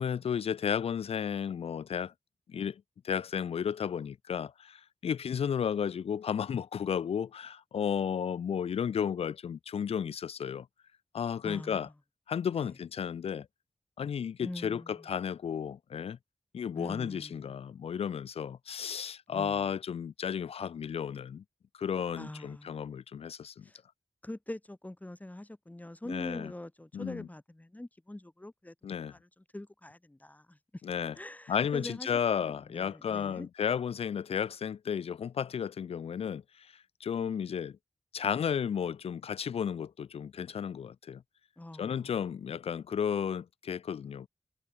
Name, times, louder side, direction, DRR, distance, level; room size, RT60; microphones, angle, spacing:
voice 1, 0.0-2.1 2.5-10.7 11.1-11.9 12.3-13.5 14.0-16.2 16.5-21.4 21.7-23.6 26.1-26.5 26.9-27.3 28.8-29.1 30.8-31.2 31.5-37.8 38.1-41.2 41.8-44.3, left 7 dB, 75° left, 0.4 m, -33 dB
voice 2, 11.4-11.9 12.5-12.7 14.4-15.1 16.8-17.6 19.3-19.7 22.2-22.9 23.6-23.8 24.2-28.7 29.1-30.6 31.2-33.5 41.6-42.2, left 1 dB, 15° left, 2.6 m, -44 dB
wide cardioid pair, 90°, 10 cm